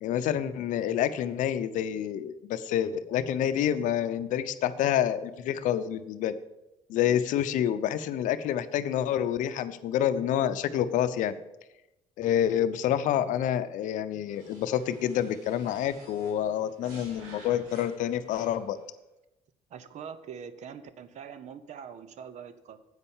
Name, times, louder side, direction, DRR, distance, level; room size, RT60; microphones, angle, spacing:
voice 1, 0.0-6.3 6.9-11.3 12.2-18.8, left 10 dB, 70° left, 12 dB, 0.6 m, -28 dB
sound 1, 14.3-18.9, right 2 dB, 85° right, 2.4 m, -52 dB
voice 2, 19.7-22.8, right 7 dB, 60° right, 13 dB, 0.8 m, -43 dB
8.1 x 5.5 x 7.1 m, 0.95 s
supercardioid pair, 85°, 14 cm